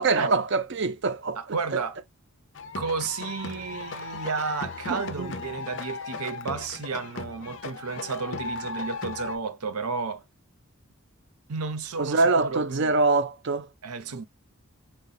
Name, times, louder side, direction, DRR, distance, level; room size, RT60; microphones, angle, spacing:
voice 1, 0.0-1.4 1.7-1.8 4.9-5.3 12.0-13.7, right 3 dB, 55° right, 0.5 m, -24 dB
voice 2, 1.4-2.0 2.8-10.2 11.5-12.9 13.8-14.2, right 4 dB, 90° right, 0.8 m, -32 dB
sound 1, 2.5-9.4, left 4 dB, 55° left, 0.6 m, -36 dB
3.9 x 2.3 x 4.1 m
head